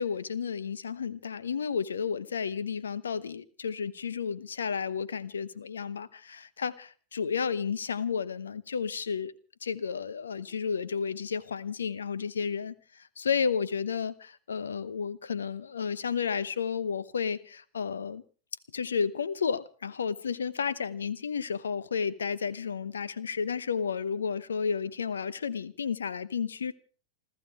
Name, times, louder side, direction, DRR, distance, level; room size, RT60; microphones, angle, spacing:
voice 1, 0.0-9.3 9.6-18.2 18.7-26.7, left 6 dB, 70° left, 18 dB, 1.0 m, -32 dB
28.0 x 13.5 x 3.5 m, 0.41 s
figure-of-eight pair, 90°, 0 cm